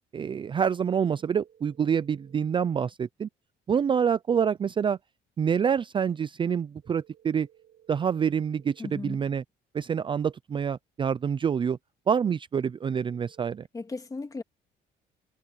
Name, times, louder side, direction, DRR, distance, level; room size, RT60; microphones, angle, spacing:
voice 1, 0.1-3.3 3.7-5.0 5.4-7.5 7.9-8.7 9.0-9.4 9.7-11.8 12.1-13.6, right 7 dB, 30° right, 0.5 m, -26 dB
sound 1, 0.9-2.8 6.8-8.8 12.8-13.7, right 9 dB, 60° right, 5.7 m, -59 dB
voice 2, 8.8-9.2 13.7-14.4, left 3 dB, 20° left, 2.4 m, -36 dB
cardioid pair, 110°, 17 cm